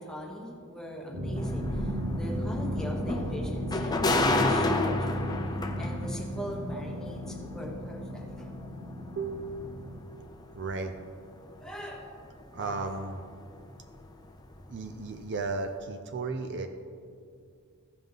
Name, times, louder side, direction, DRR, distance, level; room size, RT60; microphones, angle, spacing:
voice 1, 0.0-5.3 5.8-8.5 11.6-12.0, equal, 5° left, -2 dB, 1.2 m, -40 dB
sound 1, 1.1-10.0, equal, 85° right, 1.3 m, -34 dB
sound 2, 1.4-13.2 13.5-15.2 15.5-15.7, left 2 dB, 20° left, 0.5 m, -33 dB
voice 2, 9.2-9.8 10.5-10.9 12.5-13.2 14.7-16.7, right 3 dB, 55° right, 6 dB, 0.5 m, -34 dB
14.5 x 5.4 x 3.9 m, 2.3 s
head